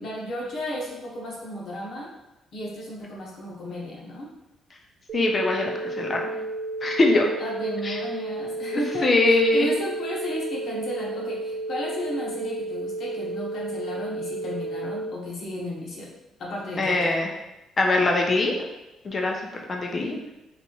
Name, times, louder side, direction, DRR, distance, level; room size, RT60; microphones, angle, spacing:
voice 1, 0.0-2.1 2.5-4.3 7.4-16.1 16.4-17.1, left 1 dB, 50° left, -3 dB, 1.1 m, -34 dB
voice 2, 5.1-6.4 6.8-7.3 7.8-8.0 8.7-9.7 16.8-17.3 17.8-18.5 19.0-20.2, left 2 dB, 25° left, 1 dB, 0.6 m, -22 dB
sound 1, 5.1-15.1, right 2 dB, 40° right, 0.6 m, -32 dB
4.1 x 3.5 x 2.9 m, 0.98 s
cardioid pair, 165°, 0 cm